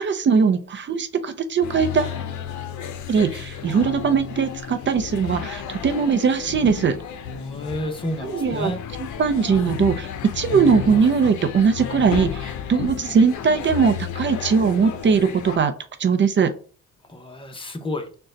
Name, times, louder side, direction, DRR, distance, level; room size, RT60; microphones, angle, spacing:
voice 1, 0.0-2.1 3.1-7.0 8.2-8.7 9.0-10.1 10.3-15.7 16.0-16.5, right 5 dB, 40° right, 9 dB, 0.5 m, -20 dB
sound 1, 1.6-15.6, left 8 dB, 75° left, 0.6 m, -32 dB
voice 2, 7.3-8.8 17.1-18.1, left 1 dB, 15° left, 5 dB, 0.8 m, -30 dB
3.8 x 2.3 x 3.8 m, 0.40 s
cardioid pair, 90°, 30 cm